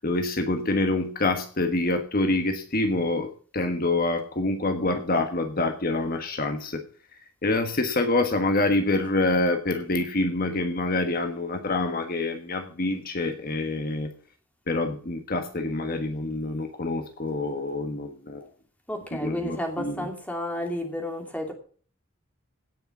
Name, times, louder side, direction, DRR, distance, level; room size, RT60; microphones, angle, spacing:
voice 1, 0.0-6.8 7.4-14.1 14.7-18.5 19.1-20.1, left 2 dB, 45° left, 6 dB, 1.4 m, -26 dB
voice 2, 18.9-21.5, left 1 dB, 5° left, 3 dB, 2.6 m, -31 dB
17.0 x 6.6 x 6.1 m, 0.43 s
head